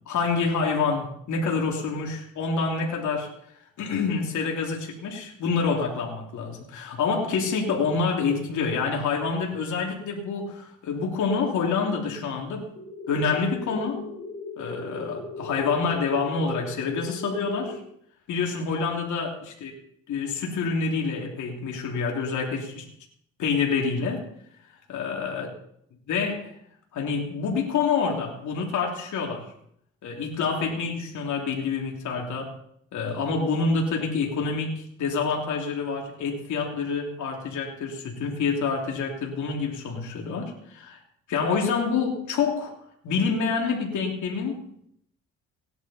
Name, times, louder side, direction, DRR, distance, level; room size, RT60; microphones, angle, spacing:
voice 1, 0.1-3.3 3.8-12.7 13.1-14.1 14.6-17.8 18.3-19.7 20.1-22.9 23.4-24.3 24.9-25.5 26.1-26.5 26.9-29.5 30.0-32.5 32.9-41.0 41.3-42.7 43.0-44.7, left 5 dB, 75° left, -1 dB, 2.9 m, -27 dB
sound 1, 12.8-17.8, left 4 dB, 40° left, 3.1 m, -38 dB
17.5 x 11.0 x 4.2 m, 0.69 s
cardioid pair, 90°, 30 cm